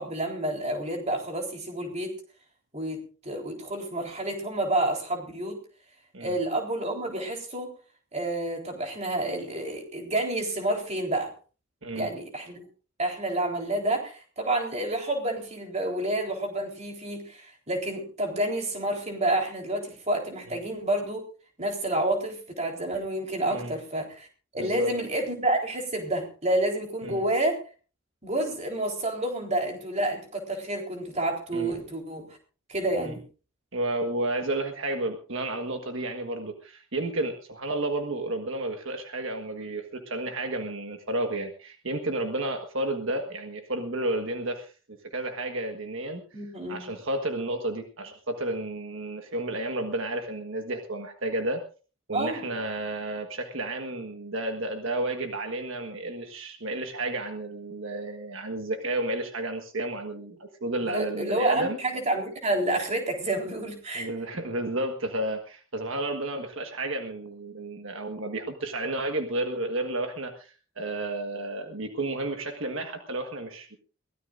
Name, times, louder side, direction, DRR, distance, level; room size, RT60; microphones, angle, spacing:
voice 1, 0.0-2.1 2.7-5.6 6.2-7.7 8.1-11.3 12.0-12.6 13.0-21.2 21.6-24.3 24.5-27.6 28.2-32.4 32.7-33.2 46.3-46.9 52.1-52.4 60.9-64.1, right 1 dB, 30° right, 2 dB, 3.9 m, -29 dB
voice 2, 24.5-24.9 27.0-27.2 31.5-31.7 33.0-33.2 33.7-46.2 46.7-51.6 52.1-61.8 63.9-73.8, right 2 dB, 65° right, 4 dB, 1.5 m, -32 dB
22.5 x 17.0 x 2.6 m, 0.37 s
head